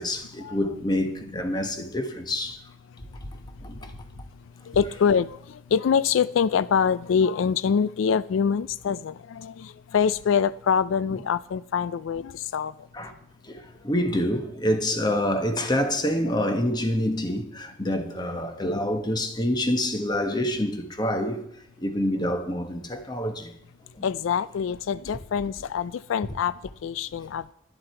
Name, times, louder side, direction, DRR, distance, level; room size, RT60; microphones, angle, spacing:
voice 1, 0.0-2.6 3.6-3.9 12.9-13.1 13.4-21.4 21.8-23.5 24.0-24.1, left 1 dB, 20° left, 1.3 m, -27 dB
voice 2, 3.7-4.2 4.6-12.9 24.0-27.5, left 7 dB, 85° left, 0.4 m, -25 dB
12.0 x 11.5 x 4.5 m
head